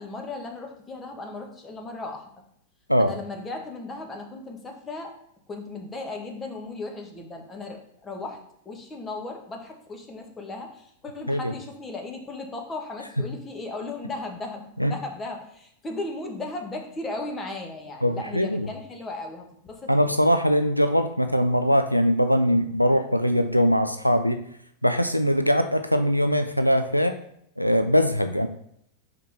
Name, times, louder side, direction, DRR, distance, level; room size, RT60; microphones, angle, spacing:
voice 1, 0.0-2.3 3.0-5.1 5.5-19.9, left 2 dB, 20° left, 2 dB, 1.5 m, -36 dB
voice 2, 18.0-18.7 19.9-24.4 24.8-27.2 27.6-28.5, equal, 90° left, 8 dB, 0.4 m, -21 dB
5.9 x 4.5 x 4.1 m, 0.71 s
figure-of-eight pair, 90°, 0 cm